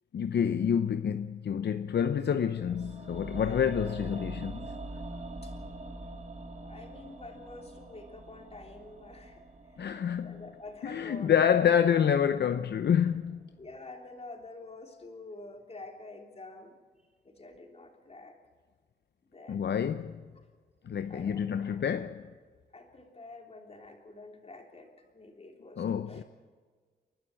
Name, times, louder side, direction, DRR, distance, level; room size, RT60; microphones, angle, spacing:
voice 1, 0.1-4.7 9.8-10.4 10.8-13.5 19.5-20.2 20.8-22.3 25.8-26.2, left 8 dB, 75° left, 0.7 m, -28 dB
sound 1, 2.5-12.7 12.9-13.0, right 2 dB, 45° right, 2.2 m, -44 dB
voice 2, 3.4-3.7 5.4-5.5 6.6-11.4 13.6-16.7 17.2-18.4 19.2-19.8 21.1-21.9 22.7-26.2, left 2 dB, 35° left, 3.4 m, -48 dB
29.5 x 12.0 x 7.7 m
wide cardioid pair, 100°, 18 cm